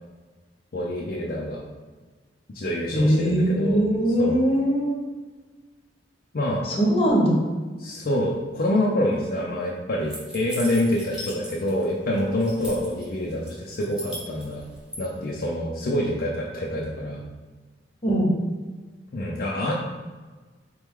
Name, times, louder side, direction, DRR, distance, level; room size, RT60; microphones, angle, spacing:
voice 1, 0.7-1.6 2.5-3.8 4.2-4.4 6.3-6.6 7.8-14.6 15.0-17.2 19.1-19.7, left 1 dB, 55° left, -3 dB, 0.5 m, -26 dB
voice 2, 2.9-5.0 6.6-7.4 18.0-18.3, equal, 35° left, -2 dB, 0.9 m, -21 dB
sound 1, 10.1-11.8 12.1-13.0 13.5-15.0, left 1 dB, 5° right, 0.8 m, -38 dB
4.2 x 3.1 x 3.6 m, 1.3 s
head